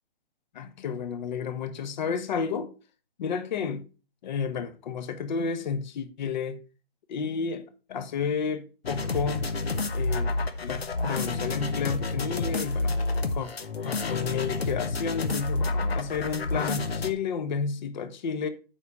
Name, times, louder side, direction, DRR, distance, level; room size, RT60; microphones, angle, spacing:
voice 1, 0.5-2.7 3.2-3.8 4.2-6.6 7.1-9.5 9.9-10.3 10.6-13.0 13.3-13.5 13.8-18.5, left 6 dB, 50° left, 1.2 m, -31 dB
sound 1, 8.8-17.1, left 3 dB, 90° left, 1.2 m, -29 dB
7.8 x 5.6 x 4.8 m
hypercardioid pair, 145°, 30 cm